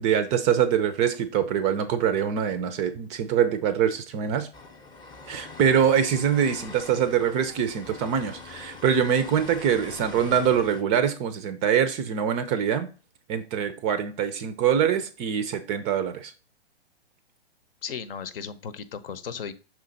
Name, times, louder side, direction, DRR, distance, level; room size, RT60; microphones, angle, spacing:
voice 1, 0.0-4.5 5.3-12.9 13.3-16.3, right 8 dB, 20° right, 0.5 m, -24 dB
sound 1, 4.5-10.8, left 4 dB, 15° left, 0.7 m, -43 dB
voice 2, 17.8-19.5, left 7 dB, 60° left, 0.8 m, -35 dB
6.1 x 4.0 x 3.9 m
hypercardioid pair, 120°, 32 cm